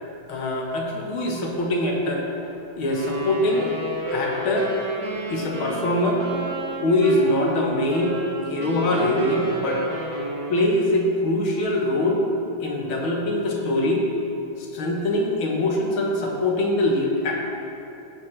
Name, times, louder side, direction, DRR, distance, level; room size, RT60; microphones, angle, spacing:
voice 1, 0.3-2.2 2.7-3.7 4.1-4.7 5.3-6.3 6.8-8.1 8.4-9.8 10.5-12.2 12.6-14.1 14.7-17.4, left 1 dB, 85° left, -1 dB, 2.1 m, -23 dB
Wind instrument woodwind instrument, 2.9-10.8, right 2 dB, 60° right, 1.7 m, -31 dB
15.0 x 6.5 x 3.2 m, 2.8 s
omnidirectional pair, 2.2 m